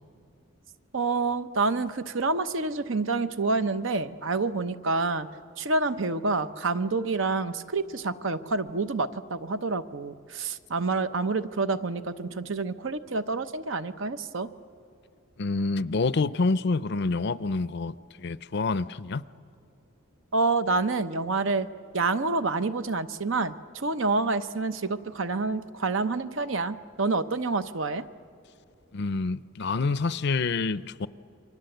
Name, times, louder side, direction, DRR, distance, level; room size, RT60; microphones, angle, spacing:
voice 1, 0.9-5.3 5.6-14.5 20.3-21.7 21.9-28.0, right 3 dB, 65° right, 11 dB, 0.8 m, -28 dB
voice 2, 15.4-19.2 28.9-31.1, left 3 dB, 55° left, 16 dB, 0.5 m, -27 dB
29.0 x 24.0 x 7.9 m, 2.6 s
head